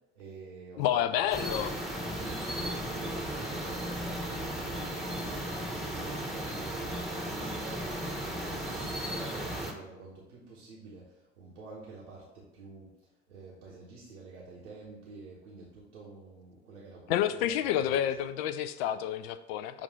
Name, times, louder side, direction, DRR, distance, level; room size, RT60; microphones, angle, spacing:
voice 1, 0.1-1.6 2.2-4.8 5.2-7.8 8.2-12.9 13.3-18.0, right 3 dB, 80° right, -6 dB, 1.0 m, -48 dB
voice 2, 0.8-1.7 17.1-19.8, left 10 dB, 55° left, 12 dB, 0.5 m, -29 dB
sound 1, 1.3-9.7, right 1 dB, ahead, 0.9 m, -35 dB
7.1 x 2.5 x 5.4 m, 0.97 s
figure-of-eight pair, 65°, 35 cm